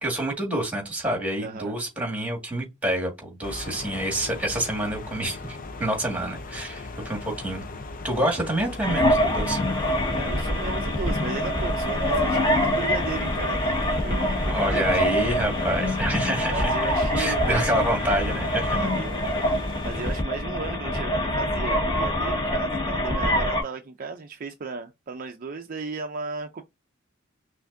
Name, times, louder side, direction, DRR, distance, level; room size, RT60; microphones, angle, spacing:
voice 1, 0.0-7.6 8.0-9.6 14.5-16.7 17.2-18.8, right 1 dB, 5° right, 1.8 m, -27 dB
voice 2, 1.4-1.8 10.1-15.1 16.5-17.9 18.7-19.6 19.8-26.6, right 4 dB, 40° right, 0.5 m, -35 dB
sound 1, 3.4-20.2, left 3 dB, 40° left, 0.6 m, -38 dB
sound 2, 8.8-23.6, left 1 dB, 20° left, 1.3 m, -25 dB
5.8 x 2.5 x 2.6 m
head